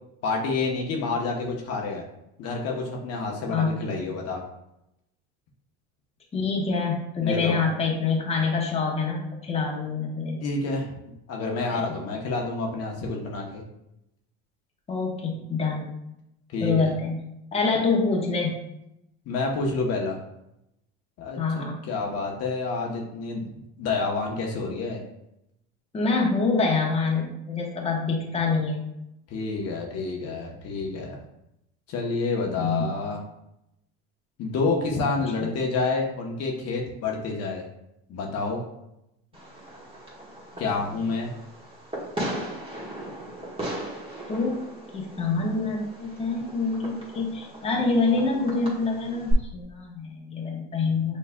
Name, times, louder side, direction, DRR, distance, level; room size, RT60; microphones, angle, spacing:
voice 1, 0.2-2.0 2.4-4.4 7.2-7.6 10.4-10.9 11.3-13.6 16.5-16.9 19.3-20.2 21.2-23.5 23.8-25.0 29.3-31.2 31.9-33.2 34.4-37.6 38.1-38.6 40.6-41.3, left 3 dB, 50° left, 0 dB, 0.9 m, -28 dB
voice 2, 3.5-3.9 6.3-10.4 11.7-11.8 14.9-15.9 16.6-17.2 17.5-18.6 21.4-21.8 25.9-28.8 32.6-32.9 44.3-44.6 44.9-51.2, left 4 dB, 20° left, -1 dB, 1.0 m, -26 dB
Fireworks, 39.3-49.3, right 2 dB, 15° right, 1.4 m, -37 dB
5.7 x 3.2 x 2.2 m, 0.84 s
supercardioid pair, 105°, 31 cm